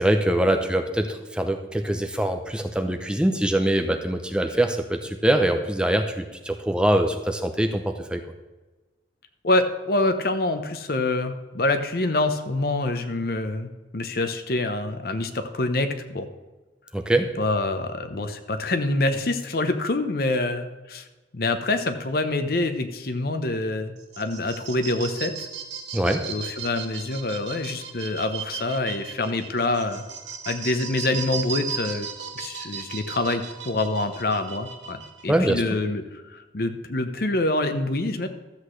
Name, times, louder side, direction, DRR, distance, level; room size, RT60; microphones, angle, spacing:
voice 1, 0.0-8.2 16.9-17.3 25.9-26.3 35.3-35.8, right 1 dB, 5° right, 5 dB, 0.5 m, -23 dB
voice 2, 9.4-16.3 17.4-21.1 21.3-25.5 26.3-30.0 30.5-32.1 32.3-38.3, left 2 dB, 55° left, 8 dB, 0.8 m, -26 dB
sound 1, 24.0-35.2, right 6 dB, 80° right, 1.2 m, -36 dB
13.0 x 8.0 x 3.2 m, 1.2 s
head